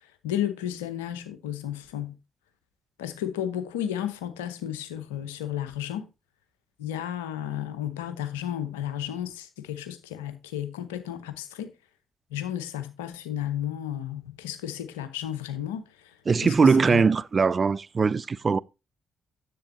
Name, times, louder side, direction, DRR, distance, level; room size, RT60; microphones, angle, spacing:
voice 1, 0.2-2.1 3.0-6.1 6.8-11.7 12.3-16.2 16.4-17.0, left 11 dB, 85° left, 0.8 m, -33 dB
voice 2, 16.3-18.6, right 5 dB, 40° right, 0.4 m, -21 dB
10.5 x 7.8 x 2.7 m
hypercardioid pair, 40°, 0 cm